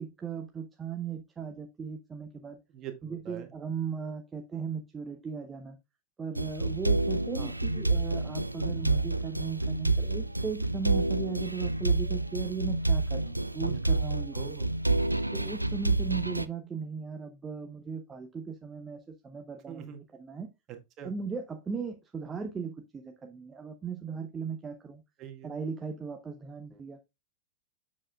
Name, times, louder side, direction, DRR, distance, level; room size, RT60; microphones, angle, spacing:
voice 1, 0.0-2.6 3.0-5.8 6.2-14.4 15.3-19.8 20.2-20.5 21.0-25.0 25.4-27.0, right 5 dB, 20° right, 0.8 m, -37 dB
voice 2, 2.7-3.5 7.4-7.8 14.3-14.7 19.7-20.0 20.7-21.1 25.2-25.6, right 9 dB, 35° right, 1.8 m, -43 dB
sound 1, 6.4-16.5, right 2 dB, 85° right, 0.4 m, -28 dB
7.4 x 7.3 x 2.3 m
figure-of-eight pair, 90°, 0 cm